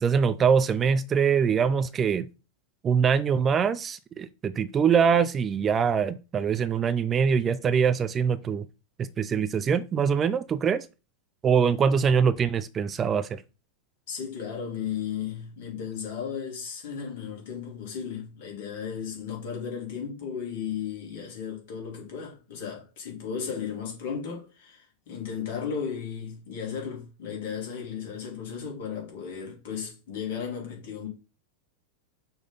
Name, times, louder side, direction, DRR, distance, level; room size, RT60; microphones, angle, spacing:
voice 1, 0.0-2.3 2.8-8.7 9.0-10.9 11.4-13.4, right 6 dB, 25° right, 0.4 m, -23 dB
voice 2, 14.1-31.1, left 7 dB, 50° left, 3.1 m, -35 dB
6.0 x 3.8 x 5.4 m
figure-of-eight pair, 90°, 0 cm